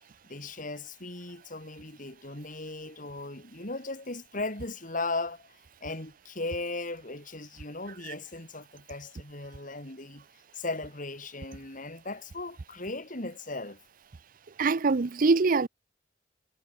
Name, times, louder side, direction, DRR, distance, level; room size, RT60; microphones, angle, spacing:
voice 1, 0.2-10.2 10.5-13.8, left 2 dB, 45° left, 5.7 m, -37 dB
voice 2, 14.6-15.7, right 4 dB, 50° right, 0.6 m, -23 dB
head